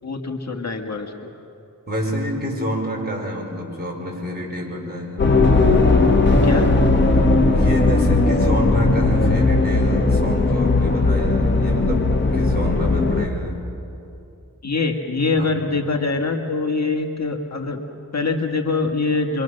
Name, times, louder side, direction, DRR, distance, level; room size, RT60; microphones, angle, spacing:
voice 1, 0.0-1.3 6.4-6.7 14.6-19.4, left 3 dB, 50° left, 3 dB, 1.8 m, -24 dB
voice 2, 1.9-5.4 6.6-6.7 7.5-12.0 12.3-13.6 15.4-15.6, equal, 30° right, -1 dB, 5.1 m, -28 dB
sound 1, 5.2-13.3, left 2 dB, 35° left, 1.7 m, -17 dB
26.5 x 24.0 x 6.5 m, 2.7 s
wide cardioid pair, 100°, 34 cm